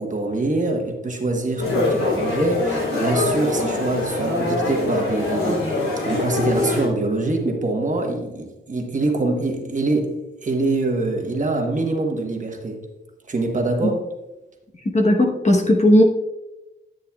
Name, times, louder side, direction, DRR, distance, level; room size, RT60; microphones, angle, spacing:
voice 1, 0.0-10.2 10.4-12.8 13.3-14.0, right 2 dB, 40° right, 2 dB, 1.2 m, -24 dB
sound 1, 1.6-6.9, left 2 dB, 90° left, 3.3 m, -23 dB
voice 2, 14.9-16.0, left 1 dB, 35° left, 2 dB, 1.1 m, -16 dB
10.0 x 9.9 x 2.3 m, 1.0 s
wide cardioid pair, 160°, 21 cm